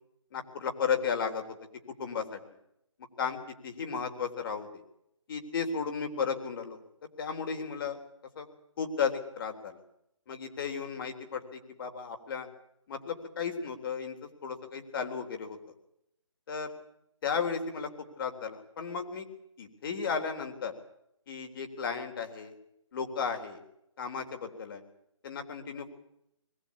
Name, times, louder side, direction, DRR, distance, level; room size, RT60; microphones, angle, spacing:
voice 1, 0.3-1.6 2.0-2.4 3.2-4.7 5.3-6.8 7.2-8.0 8.4-8.5 8.8-9.8 10.3-12.5 12.9-14.2 14.4-15.6 16.5-16.7 17.2-17.9 18.2-19.3 19.6-20.7 21.3-22.5 22.9-23.6 24.0-24.8 25.2-25.9, left 6 dB, 45° left, 6 dB, 3.7 m, -34 dB
22.0 x 18.5 x 8.5 m, 0.80 s
figure-of-eight pair, 145°, 17 cm